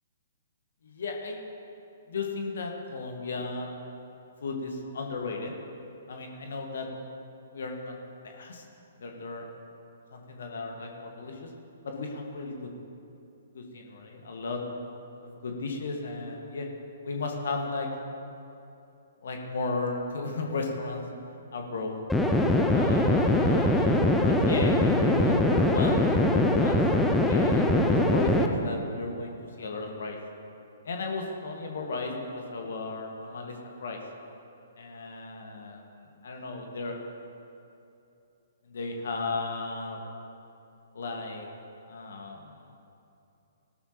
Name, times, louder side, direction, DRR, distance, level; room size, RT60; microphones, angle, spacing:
voice 1, 0.8-1.4 2.1-3.7 4.4-5.5 6.1-6.9 7.5-8.0 8.2-8.6 9.0-9.5 10.1-11.5 11.8-12.7 13.5-14.6 15.2-16.7 17.0-17.9 19.2-21.0 21.5-22.0 22.7-26.0 26.3-26.8 27.3-30.2 30.9-33.6 33.8-34.0 34.8-37.0 38.7-40.0 40.9-41.5 41.9-42.5, left 3 dB, 60° left, 2 dB, 1.8 m, -35 dB
sound 1, 22.1-28.5, left 1 dB, 5° left, 0.9 m, -22 dB
18.0 x 12.0 x 3.1 m, 2.7 s
figure-of-eight pair, 120°, 0 cm